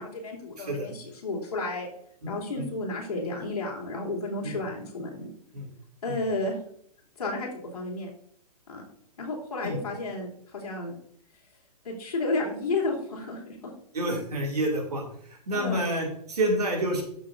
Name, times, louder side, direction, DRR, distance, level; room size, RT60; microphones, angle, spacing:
voice 1, 0.0-1.9 2.3-5.3 6.0-6.6 7.2-8.1 8.7-8.8 9.2-10.9 11.8-13.7 15.5-15.8, left 2 dB, 65° left, -2 dB, 3.3 m, -32 dB
voice 2, 2.2-2.7 4.4-4.5 5.5-5.7 6.1-6.2 9.6-9.8 13.9-15.0 15.5-17.0, right 1 dB, 70° right, 1 dB, 2.9 m, -28 dB
12.5 x 6.3 x 2.7 m, 0.67 s
figure-of-eight pair, 120°, 21 cm